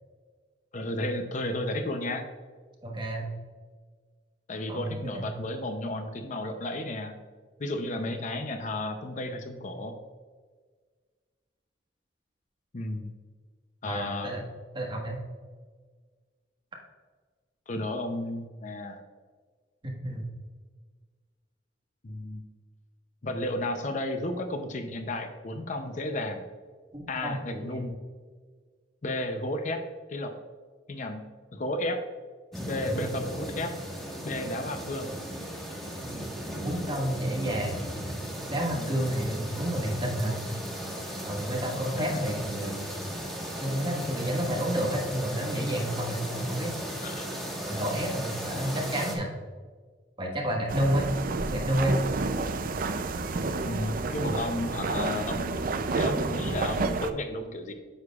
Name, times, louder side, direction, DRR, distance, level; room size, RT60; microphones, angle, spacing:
voice 1, 0.7-2.2 4.5-7.1 7.6-10.0 12.7-13.1 13.8-14.3 17.7-19.0 22.0-22.5 23.2-26.4 27.1-27.9 29.0-29.8 30.1-30.3 30.9-31.2 31.5-32.0 32.7-33.7 34.2-35.1 38.7-39.0 42.0-42.2 47.0-47.3 53.6-55.6 56.0-57.7, left 1 dB, 45° left, 6 dB, 0.6 m, -33 dB
voice 2, 2.8-3.3 4.7-5.3 13.8-14.4 14.7-15.2 19.8-20.3 26.9-27.8 32.9-33.0 36.6-37.8 38.5-40.4 41.2-42.9 43.6-46.8 47.6-49.3 50.2-51.1 51.5-52.0, equal, 25° right, -1 dB, 1.5 m, -30 dB
sound 1, 32.5-49.2, equal, ahead, 1.4 m, -36 dB
sound 2, 50.7-57.1, right 3 dB, 50° right, 0.5 m, -30 dB
9.4 x 6.6 x 2.4 m, 1.5 s
head